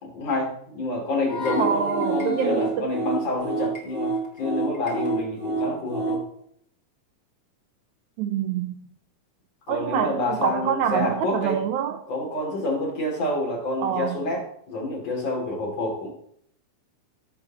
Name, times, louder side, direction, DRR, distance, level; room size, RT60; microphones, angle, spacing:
voice 1, 0.0-6.2 9.7-11.6 12.1-16.1, left 2 dB, 55° left, -3 dB, 3.9 m, -28 dB
sound 1, 1.3-6.3, right 3 dB, 30° left, 1.5 m, -28 dB
voice 2, 1.6-2.9 8.2-8.7 9.7-12.0 13.8-14.2, right 8 dB, 80° right, 6 dB, 1.8 m, -26 dB
14.5 x 6.8 x 3.0 m, 0.67 s
omnidirectional pair, 3.7 m